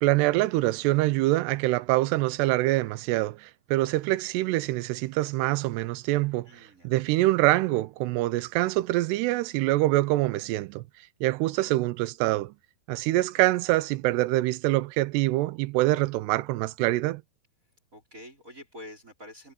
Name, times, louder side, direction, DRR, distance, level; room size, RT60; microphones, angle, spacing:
voice 1, 0.0-6.5 6.8-10.8 11.2-12.5 12.9-17.2, right 18 dB, 90° right, 2.8 m, -25 dB
voice 2, 6.4-6.9 13.3-13.5 17.9-19.5, left 1 dB, 20° right, 4.7 m, -47 dB
omnidirectional pair, 4.7 m